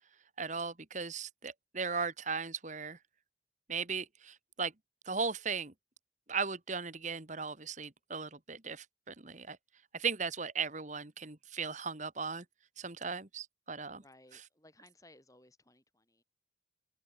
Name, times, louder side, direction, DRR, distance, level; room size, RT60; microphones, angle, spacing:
voice 1, 0.4-3.0 3.7-4.7 5.1-5.7 6.3-9.6 9.9-12.5 12.8-14.0 14.3-14.4, right 5 dB, 40° right, 1.7 m, -37 dB
voice 2, 13.9-16.2, left 1 dB, 20° left, 5.9 m, -61 dB
head